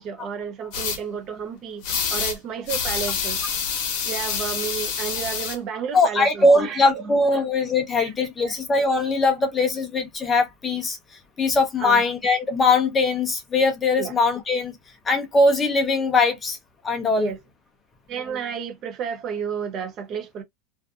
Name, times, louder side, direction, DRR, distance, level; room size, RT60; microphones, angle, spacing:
voice 1, 0.0-1.8 2.1-3.4 4.0-7.5 8.0-8.1 8.4-8.6 9.3-9.4 11.8-12.0 14.0-14.1 17.2-17.4 18.1-20.4, right 7 dB, 30° right, 0.5 m, -32 dB
sound 1, 0.7-1.0 1.8-2.4 2.7-5.6, left 6 dB, 50° left, 0.9 m, -27 dB
voice 2, 5.9-11.0 11.4-14.8 15.0-16.6 16.8-17.3, left 3 dB, 15° left, 0.6 m, -21 dB
2.5 x 2.4 x 2.3 m
supercardioid pair, 165°, 0 cm